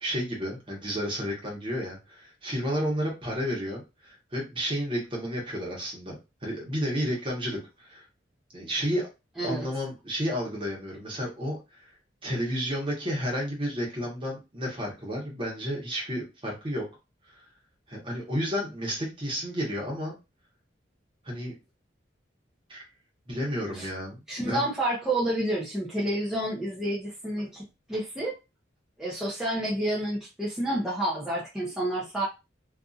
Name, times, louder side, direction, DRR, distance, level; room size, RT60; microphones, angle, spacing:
voice 1, 0.0-8.0 8.5-9.1 9.4-11.9 12.2-16.9 17.3-17.4 17.9-20.1 21.2-21.5 22.7-22.8 23.3-24.2 24.5-24.7, equal, 30° right, -2 dB, 1.0 m, -31 dB
voice 2, 24.3-28.3 29.0-32.3, right 1 dB, ahead, -8 dB, 0.7 m, -29 dB
2.6 x 2.5 x 2.4 m, 0.26 s
head